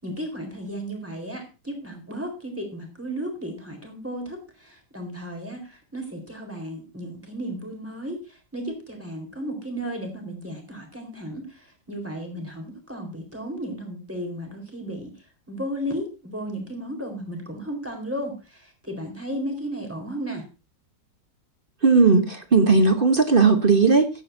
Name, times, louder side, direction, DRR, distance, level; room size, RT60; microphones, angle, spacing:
voice 1, 0.0-15.1 15.5-20.5, equal, 10° right, 3 dB, 4.0 m, -34 dB
voice 2, 21.8-24.1, right 4 dB, 35° right, 8 dB, 1.1 m, -17 dB
15.5 x 11.5 x 2.7 m, 0.30 s
omnidirectional pair, 1.8 m